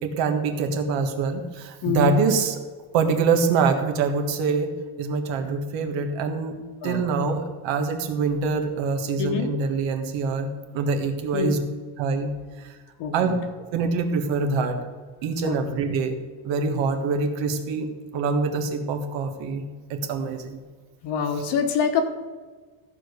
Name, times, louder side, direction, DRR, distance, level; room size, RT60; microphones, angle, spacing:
voice 1, 0.0-2.6 2.9-4.7 5.0-6.6 6.8-11.6 12.0-12.7 13.1-13.3 13.7-14.8 15.2-16.2 16.4-19.6 19.9-20.6, right 4 dB, 65° right, 5 dB, 1.6 m, -25 dB
voice 2, 1.8-2.2 6.8-7.1 9.2-9.5 11.3-11.5 13.0-13.4 15.4-15.6 21.0-22.1, left 6 dB, 55° left, 6 dB, 1.4 m, -25 dB
14.5 x 4.9 x 6.7 m, 1.4 s
cardioid pair, 170°, 48 cm